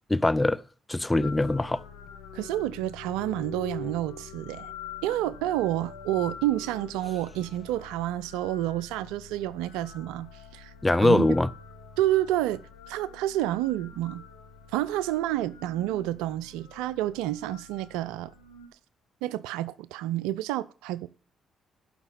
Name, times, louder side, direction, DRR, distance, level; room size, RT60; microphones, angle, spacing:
voice 1, 0.1-0.6 0.9-1.8 10.8-11.5, left 2 dB, 15° left, 0.7 m, -22 dB
sound 1, 1.2-18.7, left 5 dB, 85° left, 1.7 m, -45 dB
voice 2, 2.3-4.7 5.0-10.7 11.0-11.3 12.0-14.2 14.7-18.3 19.2-21.1, right 14 dB, 80° right, 0.5 m, -29 dB
11.0 x 5.9 x 7.3 m
hypercardioid pair, 50°, 0 cm